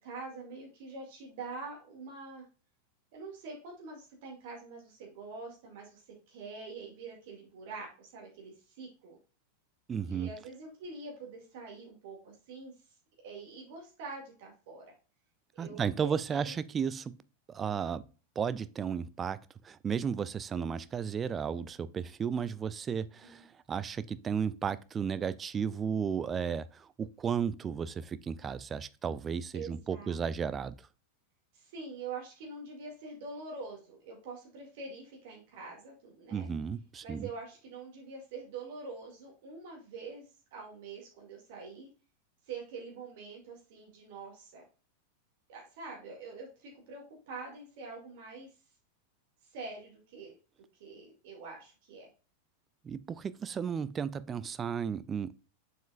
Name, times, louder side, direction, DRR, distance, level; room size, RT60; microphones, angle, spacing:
voice 1, 0.0-2.5 3.1-6.0 6.3-9.2 10.1-12.7 13.2-14.9 15.5-16.5 23.2-23.4 29.5-30.2 31.5-36.5 37.0-41.9 42.4-44.6 45.5-48.5 49.4-50.3 50.8-52.1, right 4 dB, 50° right, 2.3 m, -45 dB
voice 2, 9.9-10.3 15.6-17.2 17.5-18.0 18.4-30.9 36.3-37.3 52.8-55.3, right 7 dB, 20° right, 0.4 m, -34 dB
7.3 x 5.6 x 2.4 m
figure-of-eight pair, 90°, 0 cm